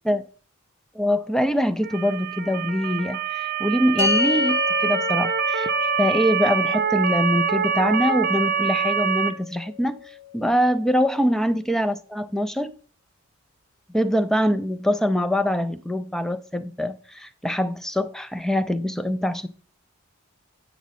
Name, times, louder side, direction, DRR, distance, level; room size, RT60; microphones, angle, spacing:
voice 1, 0.9-10.0 10.3-12.7 13.9-19.5, equal, ahead, 0.4 m, -24 dB
Motor vehicle (road) / Siren, 1.8-9.3, right 7 dB, 45° right, 0.6 m, -25 dB
sound 1, 4.0-10.5, left 4 dB, 60° left, 1.2 m, -30 dB
9.2 x 6.0 x 4.1 m
head